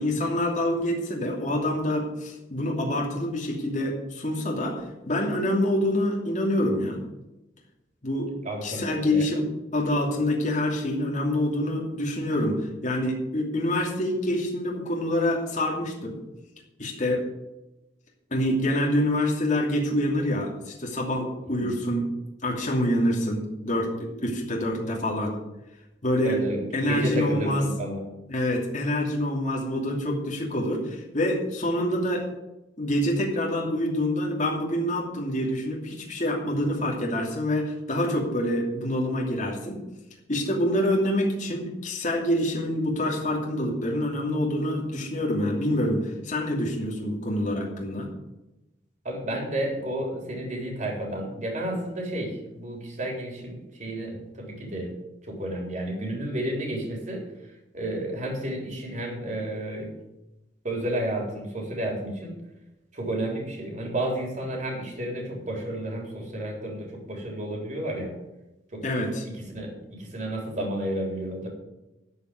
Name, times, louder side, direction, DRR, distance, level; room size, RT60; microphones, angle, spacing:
voice 1, 0.0-4.8 5.1-7.0 8.0-8.3 8.6-9.5 9.7-16.2 16.8-17.2 18.3-22.1 22.4-25.3 26.0-26.4 26.7-27.6 28.3-32.2 32.8-39.8 40.3-48.1 68.8-69.2, left 1 dB, 40° left, -2 dB, 2.8 m, -26 dB
voice 2, 8.4-9.2 21.5-21.8 26.2-28.0 49.0-54.9 55.3-57.2 57.7-59.9 60.6-62.4 62.9-68.1 68.7-68.8 69.4-71.5, right 1 dB, 45° right, 0 dB, 3.7 m, -31 dB
13.0 x 5.7 x 9.4 m, 0.96 s
head